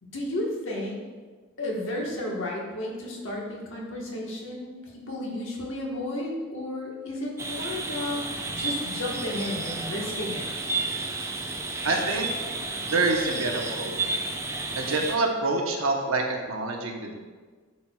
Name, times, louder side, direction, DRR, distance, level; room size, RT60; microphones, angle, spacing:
voice 1, 0.1-1.0 1.6-10.5, left 1 dB, 60° left, -2 dB, 1.3 m, -33 dB
sound 1, 7.4-15.2, right 3 dB, 15° right, 0.4 m, -32 dB
voice 2, 11.8-12.3 12.9-14.0 14.8-17.1, right 3 dB, 75° right, 1 dB, 0.9 m, -26 dB
10.5 x 4.5 x 2.3 m, 1.4 s
head